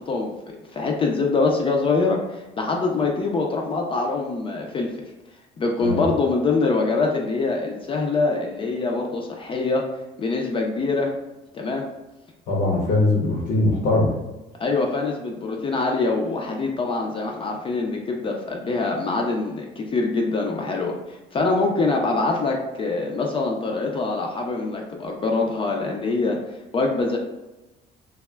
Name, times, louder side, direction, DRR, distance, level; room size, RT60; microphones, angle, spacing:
voice 1, 0.0-5.0 5.6-9.8 10.2-11.1 11.5-11.8 14.6-27.2, left 3 dB, 30° left, 1 dB, 0.4 m, -24 dB
voice 2, 12.5-14.2, left 2 dB, 75° left, -3 dB, 0.7 m, -21 dB
2.2 x 2.0 x 3.2 m, 1.0 s
cardioid pair, 110°, 17 cm